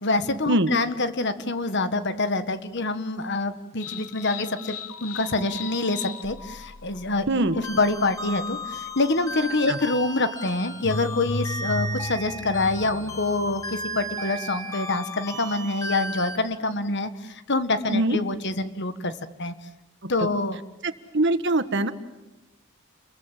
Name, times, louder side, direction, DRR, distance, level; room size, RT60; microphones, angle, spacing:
voice 1, 0.0-4.7 5.0-7.3 7.7-19.1 19.4-19.5 20.1-20.6, left 2 dB, 50° left, 11 dB, 1.6 m, -26 dB
sound 1, 3.8-14.4, left 2 dB, 85° left, 1.4 m, -37 dB
sound 2, 7.6-16.4, equal, 15° left, 4.5 m, -35 dB
voice 2, 20.8-21.9, right 1 dB, 55° right, 10 dB, 1.6 m, -23 dB
30.0 x 22.0 x 7.6 m, 1.0 s
head